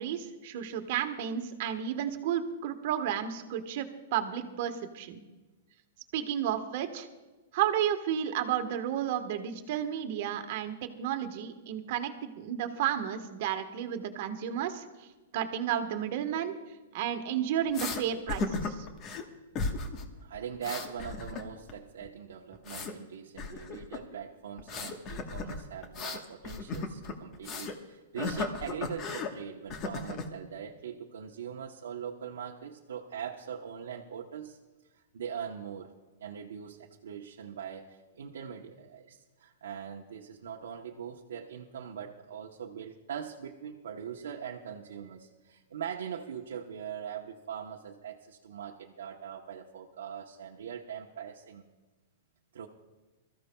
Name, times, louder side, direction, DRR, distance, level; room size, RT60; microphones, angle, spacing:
voice 1, 0.0-5.2 6.1-7.1 7.5-15.1 15.3-16.6 16.9-18.9, right 10 dB, 55° right, 7 dB, 1.2 m, -32 dB
sound 1, 17.7-18.0 18.3-19.2 19.5-20.1 20.3-21.7 22.0-22.9 23.4-24.0 24.6-27.8 28.2-29.3 29.7-30.3, left 4 dB, 35° left, 1.2 m, -36 dB
voice 2, 20.2-34.6 35.1-35.9 36.2-51.6 52.5-52.7, right 8 dB, 85° right, -1 dB, 0.9 m, -41 dB
23.0 x 14.0 x 2.3 m, 1.2 s
hypercardioid pair, 135°, 0 cm